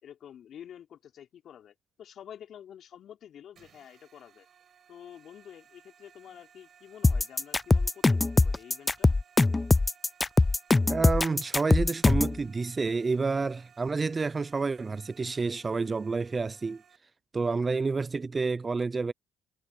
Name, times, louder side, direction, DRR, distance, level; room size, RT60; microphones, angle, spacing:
voice 1, 0.0-4.5 4.9-9.2, left 9 dB, 60° left, 5.5 m, -49 dB
sound 1, 3.6-17.0, right 8 dB, 55° right, 7.6 m, -60 dB
sound 2, 7.0-12.4, left 3 dB, 20° left, 0.5 m, -22 dB
voice 2, 10.9-16.8 17.3-19.1, right 4 dB, 30° right, 0.7 m, -29 dB
hypercardioid pair, 60°, 0 cm